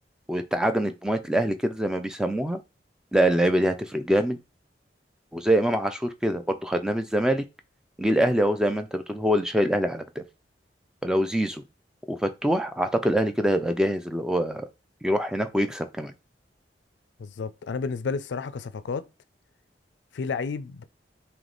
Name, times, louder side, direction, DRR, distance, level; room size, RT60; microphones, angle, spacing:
voice 1, 0.3-2.6 3.1-4.4 5.3-7.4 8.0-10.2 11.0-11.6 12.1-14.7 15.0-16.1, equal, 5° right, 0.3 m, -24 dB
voice 2, 17.2-19.1 20.1-20.8, left 5 dB, 85° left, 0.4 m, -31 dB
3.3 x 2.9 x 3.8 m
head